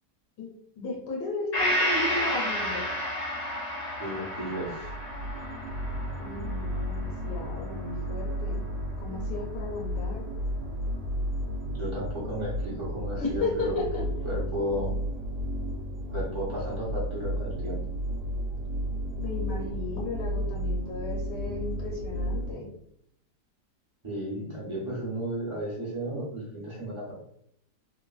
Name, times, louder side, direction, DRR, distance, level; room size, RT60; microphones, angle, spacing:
voice 1, 0.4-2.9 6.2-8.6 9.0-10.3 13.2-14.0 19.2-22.7, left 3 dB, 75° left, -2 dB, 1.3 m, -34 dB
Gong, 1.5-9.2 9.6-9.7, equal, 45° left, 0.5 m, -32 dB
voice 2, 4.0-4.9 11.8-13.8 14.2-14.9 16.1-17.8 24.0-27.1, equal, 30° right, -6 dB, 0.5 m, -34 dB
sound 1, 4.5-22.5, equal, 85° right, 1.2 m, -33 dB
3.1 x 2.1 x 2.3 m, 0.72 s
omnidirectional pair, 1.9 m